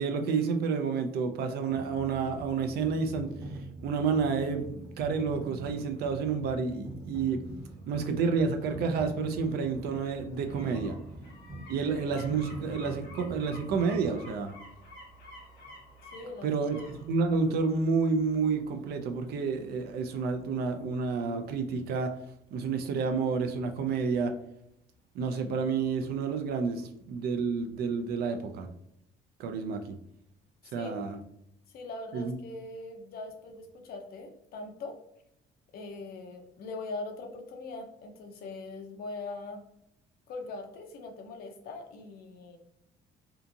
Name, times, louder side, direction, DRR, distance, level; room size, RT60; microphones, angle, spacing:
voice 1, 0.0-3.3 3.8-7.4 7.9-11.0 11.7-14.6 16.4-22.1 22.5-24.3 25.1-28.7 29.4-29.8 30.7-31.2 32.1-32.3, right 5 dB, 70° right, 6 dB, 0.4 m, -30 dB
sound 1, 1.7-14.1, right 2 dB, 20° right, 0.6 m, -43 dB
sound 2, 7.6-20.4 20.8-20.9, equal, 85° left, 1.0 m, -52 dB
voice 2, 16.1-16.5 30.6-30.9 31.7-35.0 35.7-39.6 40.3-42.6, left 3 dB, 65° left, 4 dB, 0.5 m, -41 dB
2.8 x 2.5 x 2.4 m, 0.77 s
cardioid pair, 110°, 17 cm